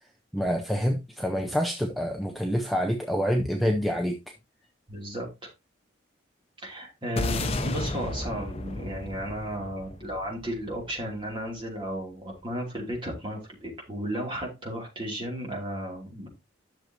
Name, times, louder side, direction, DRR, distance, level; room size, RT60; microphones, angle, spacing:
voice 1, 0.3-4.2, equal, ahead, 0.6 m, -27 dB
voice 2, 4.9-5.3 6.6-16.3, equal, 25° right, 3.0 m, -34 dB
sound 1, 7.2-11.6, left 2 dB, 30° left, 0.8 m, -33 dB
11.0 x 6.5 x 2.9 m
head